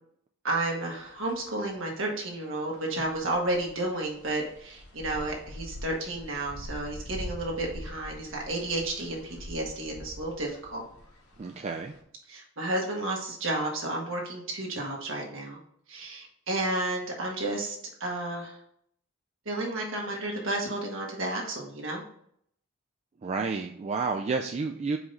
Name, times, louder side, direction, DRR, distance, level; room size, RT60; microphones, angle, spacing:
voice 1, 0.4-10.8 12.3-15.6 15.9-18.6 19.4-22.0, right 2 dB, 60° right, -1 dB, 1.6 m, -32 dB
sound 1, 0.9-12.0, left 1 dB, 90° left, 1.6 m, -45 dB
voice 2, 11.4-12.0 23.2-25.0, right 4 dB, 30° right, 3 dB, 0.3 m, -30 dB
4.9 x 3.8 x 5.4 m, 0.67 s
head